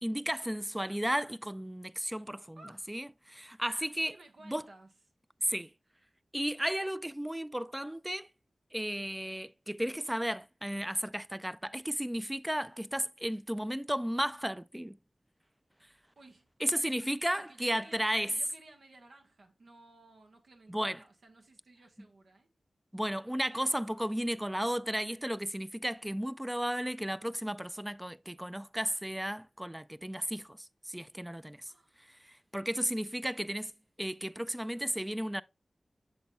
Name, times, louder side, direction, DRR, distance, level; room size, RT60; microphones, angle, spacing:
voice 1, 0.0-2.6 2.9-4.1 4.4-4.6 5.4-5.7 6.3-8.3 8.7-15.0 16.6-18.3 20.7-21.0 22.9-31.7 32.0-33.7 34.0-35.4, equal, 10° right, 0.3 m, -34 dB
voice 2, 2.6-2.9 4.1-4.9 16.2-16.5 17.3-22.5 31.6-31.9, right 2 dB, 80° right, 1.2 m, -56 dB
8.1 x 6.0 x 2.2 m
cardioid pair, 50°, 0 cm